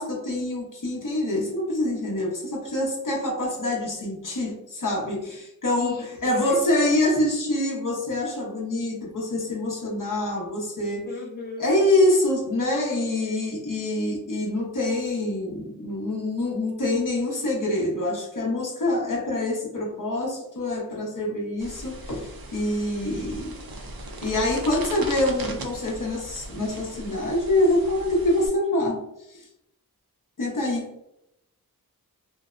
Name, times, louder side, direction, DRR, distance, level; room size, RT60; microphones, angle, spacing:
voice 1, 0.0-11.1 11.6-23.6 24.2-29.0 29.3-29.4 30.4-30.9, left 1 dB, 60° left, -3 dB, 0.8 m, -25 dB
voice 2, 5.8-6.6 11.0-11.7, left 3 dB, 30° left, -1 dB, 0.6 m, -37 dB
sound 1, 21.6-28.5, right 2 dB, 70° right, 0.6 m, -39 dB
2.6 x 2.1 x 2.4 m, 0.83 s
wide cardioid pair, 75°, 37 cm